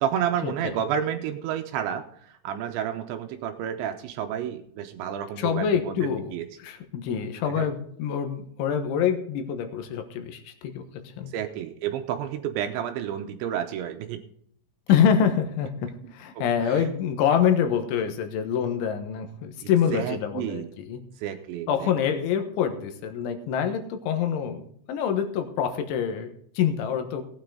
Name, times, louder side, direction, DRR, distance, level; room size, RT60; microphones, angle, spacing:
voice 1, 0.0-6.4 7.5-7.7 11.3-14.2 16.0-16.9 19.6-20.7 21.2-21.9, right 9 dB, 80° right, 6 dB, 3.0 m, -31 dB
voice 2, 5.4-6.3 6.6-10.8 11.2-11.3 14.9-21.0 21.7-27.2, left 8 dB, 75° left, 6 dB, 3.5 m, -26 dB
17.5 x 9.1 x 3.8 m, 0.67 s
omnidirectional pair, 5.7 m